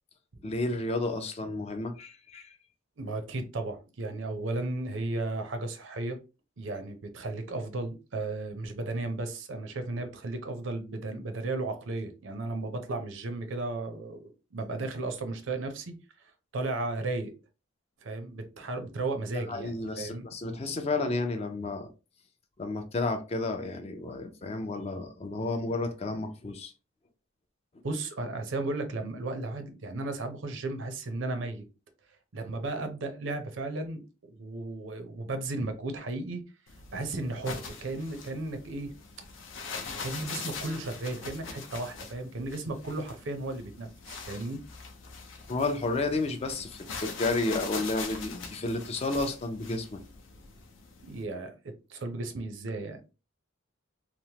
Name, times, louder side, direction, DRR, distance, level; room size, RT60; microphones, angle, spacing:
voice 1, 0.4-2.5 19.3-21.9 22.6-26.7 45.5-50.0, left 2 dB, 30° left, 0.4 m, -31 dB
voice 2, 3.0-6.2 6.6-15.9 16.5-17.3 18.0-20.3 27.8-31.6 32.3-36.4 36.9-38.9 40.0-44.6 51.0-53.0, right 2 dB, 75° right, 0.6 m, -35 dB
sound 1, 36.7-51.2, left 5 dB, 75° left, 0.6 m, -42 dB
3.0 x 2.0 x 2.8 m
head